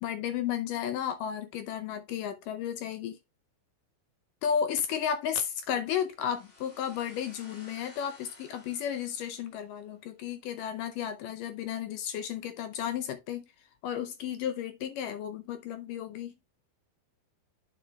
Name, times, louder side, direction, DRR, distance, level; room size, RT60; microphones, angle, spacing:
voice 1, 0.0-3.2 4.4-13.5 13.8-16.3, left 8 dB, 75° left, 2.1 m, -33 dB
sound 1, 6.2-9.9, left 2 dB, 55° left, 0.7 m, -55 dB
10.0 x 5.7 x 2.3 m
omnidirectional pair, 4.3 m